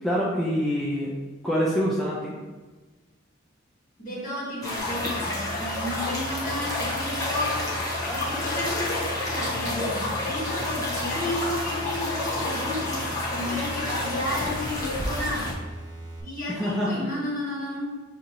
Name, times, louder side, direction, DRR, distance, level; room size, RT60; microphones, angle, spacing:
voice 1, 0.0-1.1 1.4-2.4 16.5-16.9, equal, ahead, -6 dB, 0.5 m, -25 dB
voice 2, 4.0-7.7 8.0-15.5 16.2-17.9, left 1 dB, 45° left, -6 dB, 1.4 m, -32 dB
sound 1, 4.6-15.5, left 2 dB, 20° left, 0.9 m, -29 dB
sound 2, 4.8-16.2, right 1 dB, 20° right, 1.0 m, -40 dB
6.4 x 2.8 x 2.6 m, 1.3 s
head